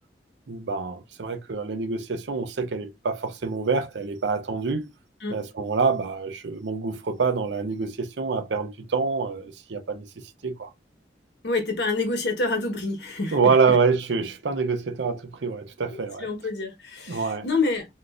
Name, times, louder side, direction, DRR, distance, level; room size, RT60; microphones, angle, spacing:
voice 1, 0.5-4.9 5.3-10.7 13.3-16.3 17.1-17.5, right 4 dB, 90° right, 0.6 m, -26 dB
voice 2, 11.4-13.5 15.9-17.9, left 3 dB, 75° left, 1.2 m, -27 dB
3.7 x 2.5 x 2.4 m
head